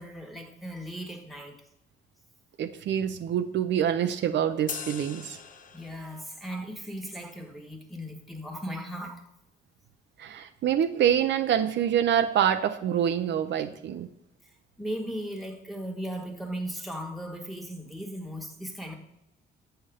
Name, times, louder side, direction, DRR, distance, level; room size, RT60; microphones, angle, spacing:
voice 1, 0.0-1.5 5.7-9.2 14.4-18.9, equal, ahead, 3 dB, 1.5 m, -37 dB
voice 2, 2.6-5.4 10.2-14.1, right 9 dB, 65° right, 8 dB, 0.6 m, -26 dB
sound 1, 4.7-6.3, left 7 dB, 45° left, 0.6 m, -40 dB
8.0 x 5.6 x 3.6 m, 0.87 s
cardioid pair, 90°, 20 cm